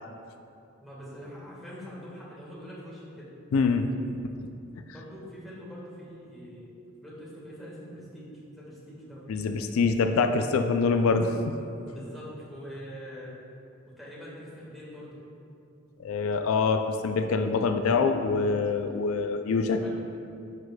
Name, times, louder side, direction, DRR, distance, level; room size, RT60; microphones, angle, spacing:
voice 1, 0.8-3.3 4.9-6.7 7.0-8.3 8.5-9.3 11.9-13.3 13.9-15.2 19.7-19.9, equal, ahead, -7 dB, 1.4 m, -44 dB
voice 2, 3.5-3.9 4.2-4.3 9.3-11.3 16.0-19.9, left 4 dB, 85° left, 6 dB, 0.4 m, -25 dB
10.5 x 4.7 x 2.2 m, 2.5 s
head